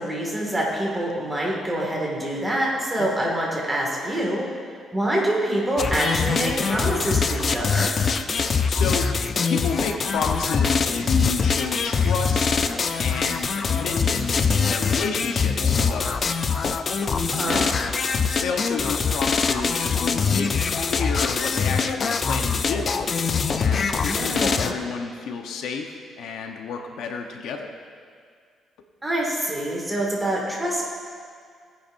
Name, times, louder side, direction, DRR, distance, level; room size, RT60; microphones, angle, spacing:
voice 1, 0.0-4.4 4.9-7.9 17.3-17.6 24.0-24.7 29.0-30.8, right 1 dB, 10° right, -3 dB, 2.0 m, -26 dB
voice 2, 3.0-3.3 8.7-9.1 9.5-12.5 13.0-16.4 17.5-17.7 18.4-22.9 23.6-27.7, left 5 dB, 75° left, 3 dB, 0.9 m, -31 dB
sound 1, 5.8-24.7, left 5 dB, 30° left, 0.4 m, -23 dB
18.5 x 9.9 x 2.6 m, 2.1 s
cardioid pair, 170°, 0 cm